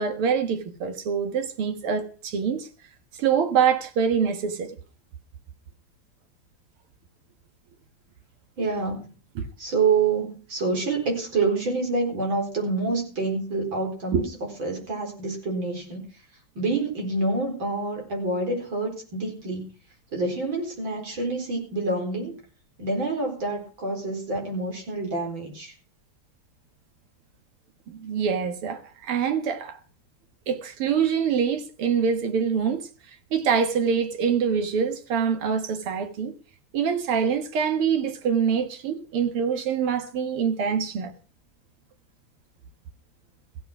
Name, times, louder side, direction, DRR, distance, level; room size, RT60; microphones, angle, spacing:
voice 1, 0.0-2.7 3.2-4.7 9.4-9.5 14.1-14.2 27.9-29.8 30.5-32.9 33.3-36.3 36.7-41.1, right 7 dB, 80° right, 2.4 m, -25 dB
voice 2, 8.6-9.1 9.6-16.0 16.5-19.7 20.1-22.4 22.8-25.7, right 3 dB, 60° right, 5.1 m, -27 dB
15.5 x 8.6 x 6.0 m
omnidirectional pair, 2.4 m